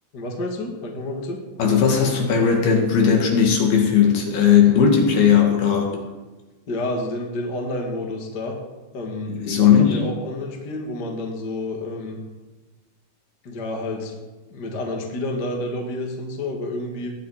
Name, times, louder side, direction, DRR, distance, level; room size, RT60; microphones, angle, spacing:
voice 1, 0.1-1.4 6.7-8.6 8.9-12.2 13.4-14.1 14.5-17.1, left 1 dB, 30° left, 1 dB, 2.0 m, -29 dB
voice 2, 1.6-6.0 9.3-10.0, left 7 dB, 65° left, 1 dB, 3.9 m, -17 dB
19.0 x 11.0 x 5.1 m, 1.2 s
omnidirectional pair, 5.0 m